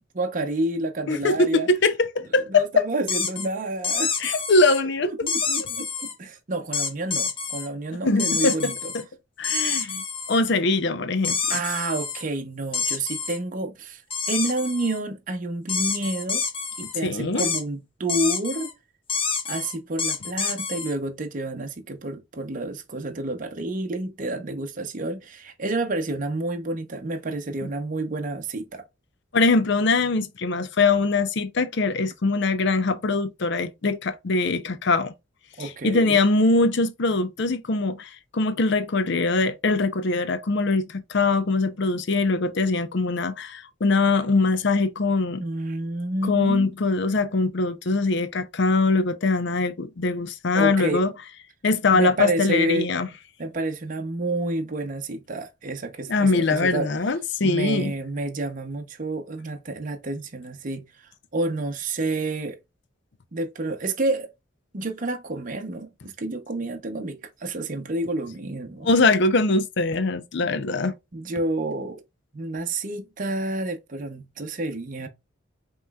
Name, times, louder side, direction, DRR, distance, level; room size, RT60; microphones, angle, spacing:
voice 1, 0.0-1.7 2.5-4.3 5.0-8.9 11.5-14.0 14.3-16.4 16.8-18.7 19.5-28.8 35.6-36.2 45.4-46.7 50.5-51.0 51.9-52.9 53.4-56.9 57.4-62.6 63.3-64.3 64.7-68.9 70.4-70.5 71.1-72.0 72.3-75.1, right 2 dB, 45° right, 0.7 m, -29 dB
voice 2, 1.1-2.9 4.2-5.3 5.6-5.7 8.0-9.0 9.4-10.0 10.3-11.6 17.0-17.5 29.3-35.1 35.6-45.4 46.2-51.1 51.6-53.1 56.1-57.9 68.8-70.9, left 3 dB, 65° left, 0.6 m, -22 dB
sound 1, 3.1-3.5 3.8-4.8 5.3-6.1 6.7-7.7 8.2-9.0 9.4-10.4 11.2-12.2 12.7-13.4 14.1-15.0 15.7-16.9 17.4-17.6 18.1-18.7 19.1-20.9, left 5 dB, 25° left, 0.8 m, -28 dB
5.4 x 3.1 x 2.3 m
head